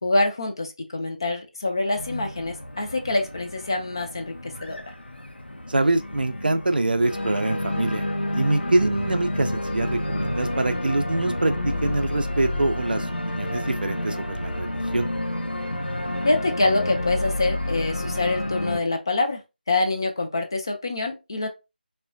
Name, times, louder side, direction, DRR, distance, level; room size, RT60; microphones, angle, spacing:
voice 1, 0.0-4.8 16.2-19.4 19.7-21.5, left 2 dB, 25° left, 0.3 m, -25 dB
Organ, 2.0-18.8, left 1 dB, 85° left, 0.6 m, -30 dB
voice 2, 5.7-15.1, right 2 dB, 65° right, 0.4 m, -25 dB
3.2 x 2.1 x 2.5 m
figure-of-eight pair, 165°, 6 cm